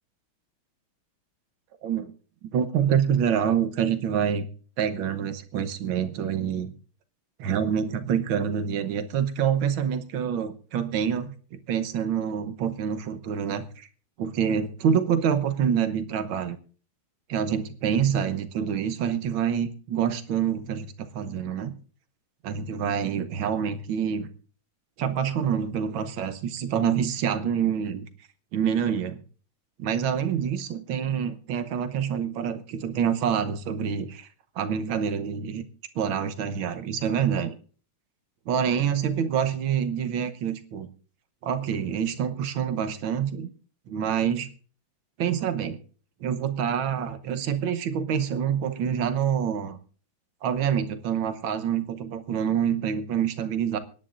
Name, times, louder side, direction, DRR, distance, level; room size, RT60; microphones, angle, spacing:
voice 1, 2.4-4.5 4.8-6.7 7.4-13.9 14.2-16.6 17.3-21.7 22.4-24.3 25.0-28.1 28.5-29.2 29.8-34.3 34.5-35.6 35.9-37.5 38.5-40.9 41.4-43.5 43.9-44.5 45.2-45.8 46.2-49.8 50.4-53.8, right 8 dB, 75° right, 9 dB, 1.7 m, -26 dB
24.5 x 10.5 x 2.5 m, 0.40 s
omnidirectional pair, 2.2 m